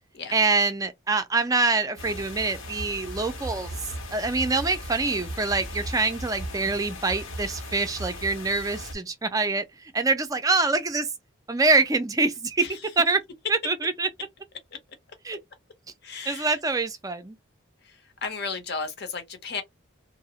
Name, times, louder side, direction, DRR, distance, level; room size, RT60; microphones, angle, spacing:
voice 1, 0.3-3.7 4.1-9.7 9.9-11.1 11.5-12.7 13.0-13.2 13.5-14.1 15.2-15.4 16.3-17.4, right 3 dB, 15° right, 0.4 m, -25 dB
sound 1, 2.0-8.9, equal, 85° left, 0.9 m, -37 dB
voice 2, 16.0-16.5 17.9-18.0 18.2-19.6, left 4 dB, 55° left, 0.8 m, -34 dB
2.8 x 2.0 x 2.7 m
head